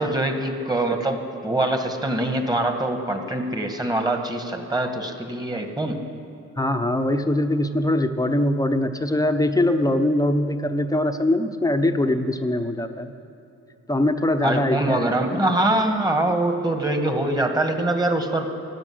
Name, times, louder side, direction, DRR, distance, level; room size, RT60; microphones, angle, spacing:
voice 1, 0.0-6.0 14.4-18.5, right 1 dB, 15° right, 5 dB, 1.8 m, -24 dB
voice 2, 6.6-13.1 13.9-15.1, left 1 dB, 10° left, 6 dB, 1.0 m, -22 dB
15.5 x 10.5 x 7.9 m, 2.9 s
cardioid pair, 90°, 30 cm